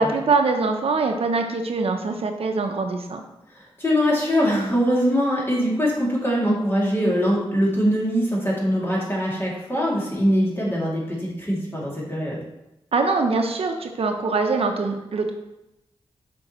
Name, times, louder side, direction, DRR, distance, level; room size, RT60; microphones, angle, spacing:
voice 1, 0.0-3.2 12.9-15.3, right 3 dB, 65° right, 4 dB, 0.7 m, -23 dB
voice 2, 3.8-12.4, equal, 20° left, -6 dB, 2.5 m, -22 dB
7.5 x 5.2 x 3.0 m, 0.90 s
wide cardioid pair, 85°, 11 cm